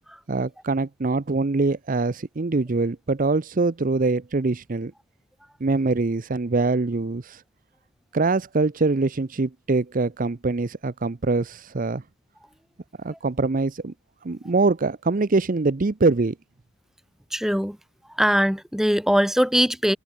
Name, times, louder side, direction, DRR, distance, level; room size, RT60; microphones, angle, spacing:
voice 1, 0.3-4.9 5.6-7.4 8.1-12.0 13.0-13.9 14.2-16.3, right 3 dB, 40° right, 0.6 m, -23 dB
voice 2, 17.3-17.8 18.2-20.0, equal, ahead, 1.2 m, -21 dB
head